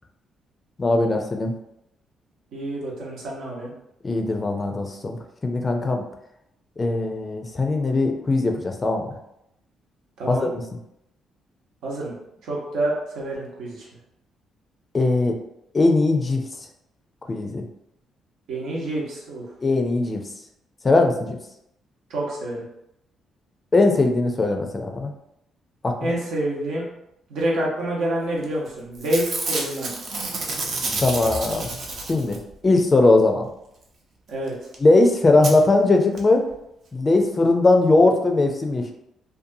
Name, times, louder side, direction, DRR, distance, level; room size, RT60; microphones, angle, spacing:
voice 1, 0.8-1.5 4.0-5.2 5.4-6.0 6.8-9.1 10.3-10.6 14.9-15.4 15.7-16.4 17.3-17.6 19.6-20.2 20.8-21.4 23.7-25.1 25.8-26.2 31.0-31.7 32.1-32.4 32.6-33.5 34.8-36.5 36.9-38.9, left 2 dB, 30° left, 3 dB, 0.4 m, -19 dB
voice 2, 2.5-3.7 10.2-10.5 11.8-12.1 12.4-13.9 18.5-19.4 22.1-22.6 26.0-26.9 27.3-29.9 34.3-34.5, right 1 dB, 85° right, -4 dB, 0.8 m, -27 dB
Packing tape duct tape / Tearing, 28.4-28.7 28.9-32.5 34.5-34.6 34.7-34.8 35.4-35.5 36.2-36.3 36.5-36.6, right 3 dB, 60° right, 0.6 m, -29 dB
2.6 x 2.3 x 2.6 m, 0.79 s
cardioid pair, 90°, 0 cm